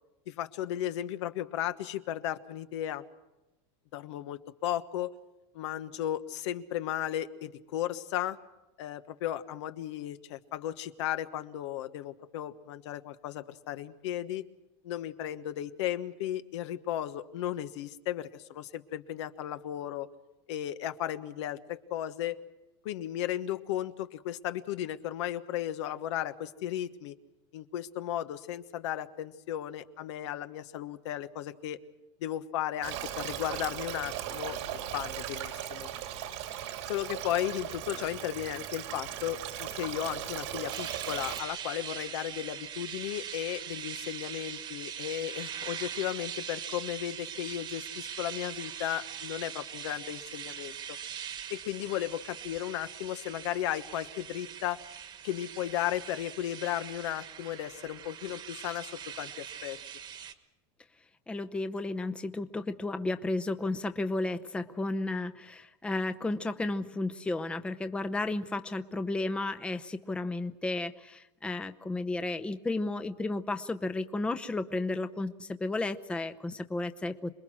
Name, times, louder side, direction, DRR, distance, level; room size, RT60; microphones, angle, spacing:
voice 1, 0.3-3.0 3.9-5.1 5.5-8.4 8.8-14.5 14.8-20.1 20.5-22.4 22.8-27.1 27.5-31.8 32.2-35.9 36.9-51.0 51.5-54.8 55.2-59.8, left 12 dB, 85° left, 10 dB, 1.3 m, -35 dB
Stream, 32.8-41.4, right 11 dB, 85° right, 2.8 m, -38 dB
sound 1, 40.7-60.3, right 8 dB, 30° right, 1.4 m, -42 dB
voice 2, 61.3-77.3, left 2 dB, 5° left, 9 dB, 0.7 m, -33 dB
27.5 x 21.0 x 6.3 m, 1.0 s
supercardioid pair, 150°, 15 cm